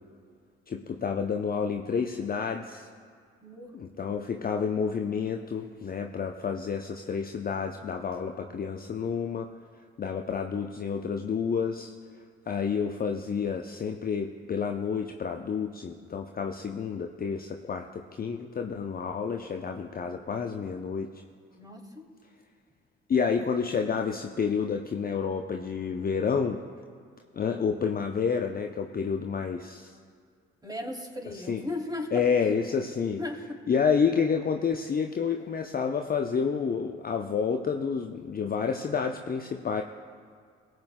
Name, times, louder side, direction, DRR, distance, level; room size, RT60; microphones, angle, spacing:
voice 1, 0.7-2.9 3.7-9.5 10.0-11.9 12.5-21.2 23.1-26.6 27.3-30.0 31.3-31.6 32.1-33.2 33.7-39.8, left 6 dB, 30° left, 4 dB, 0.6 m, -29 dB
voice 2, 3.4-3.7 21.6-22.1 30.6-32.2 33.2-33.4, left 1 dB, 10° right, 1 dB, 2.9 m, -36 dB
21.5 x 7.8 x 2.2 m, 2.2 s
figure-of-eight pair, 45°, 32 cm